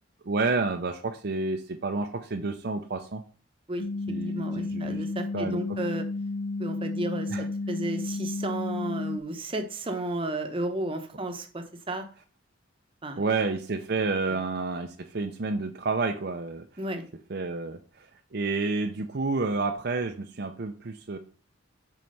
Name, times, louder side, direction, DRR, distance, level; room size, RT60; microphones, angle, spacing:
voice 1, 0.2-3.2 4.1-5.0 5.3-5.6 7.3-7.4 13.2-16.7 17.3-21.2, right 3 dB, 55° right, 5 dB, 0.6 m, -30 dB
sound 1, 3.8-9.2, left 3 dB, 65° left, 0.4 m, -32 dB
voice 2, 4.3-6.1 6.6-12.1 13.0-13.2 16.8-17.0, right 1 dB, 25° right, 6 dB, 0.9 m, -33 dB
7.6 x 4.6 x 5.4 m, 0.39 s
head